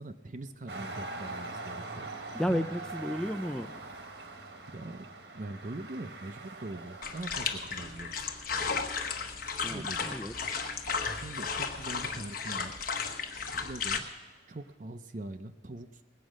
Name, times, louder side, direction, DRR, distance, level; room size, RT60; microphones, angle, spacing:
voice 1, 0.0-2.7 4.7-5.1 5.3-8.3 9.7-10.2 11.1-12.9 13.5-14.1 14.5-16.0, right 2 dB, 45° right, 8 dB, 0.6 m, -42 dB
sound 1, 0.7-13.5 14.2-14.3, right 2 dB, 70° right, 1.4 m, -45 dB
voice 2, 2.3-3.7 9.6-10.3, equal, 5° left, 9 dB, 0.4 m, -32 dB
sound 2, 7.0-14.0, left 5 dB, 50° left, 1.1 m, -34 dB
19.5 x 8.4 x 6.4 m, 1.2 s
head